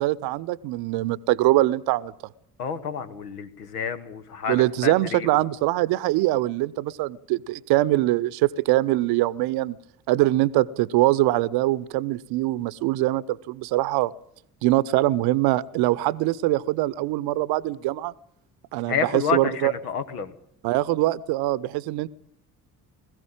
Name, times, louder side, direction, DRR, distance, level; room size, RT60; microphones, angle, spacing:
voice 1, 0.0-2.1 4.5-9.8 10.1-14.1 14.6-18.1 18.7-19.7 20.6-22.1, right 17 dB, 55° right, 20 dB, 0.8 m, -23 dB
voice 2, 2.6-5.5 18.8-20.3, left 6 dB, 75° left, 11 dB, 1.3 m, -29 dB
20.5 x 15.0 x 9.0 m, 0.73 s
figure-of-eight pair, 45°, 46 cm